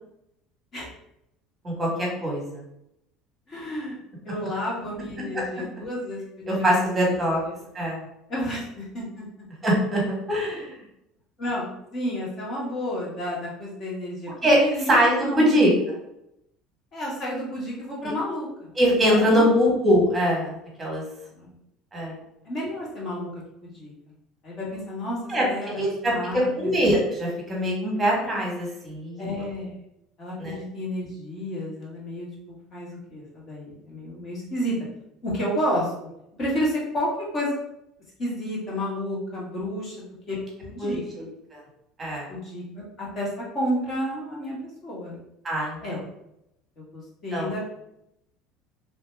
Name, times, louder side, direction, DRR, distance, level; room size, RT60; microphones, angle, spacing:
voice 1, 1.6-2.6 5.3-5.4 6.5-7.4 7.7-8.1 9.6-10.8 14.4-14.6 14.9-15.7 18.0-18.1 18.8-21.0 21.9-22.1 25.3-29.3 30.4-30.6 40.8-41.2 41.5-41.6 42.0-42.3 45.4-45.8 47.3-47.5, equal, 15° right, -3 dB, 1.4 m, -23 dB
voice 2, 3.5-4.0 4.2-6.6 7.1-7.2 7.4-7.5 8.3-9.3 11.4-14.3 14.6-15.0 15.2-15.7 16.9-18.7 19.0-19.6 21.3-21.5 22.4-23.9 24.4-25.2 25.5-26.8 29.2-29.7 30.2-34.7 35.2-35.9 36.4-37.6 38.2-41.3 42.3-43.3 43.5-44.6 44.8-45.2 45.8-46.0 46.8-47.7, equal, 35° left, -5 dB, 1.4 m, -31 dB
2.9 x 2.7 x 3.3 m, 0.82 s
cardioid pair, 140°, 0 cm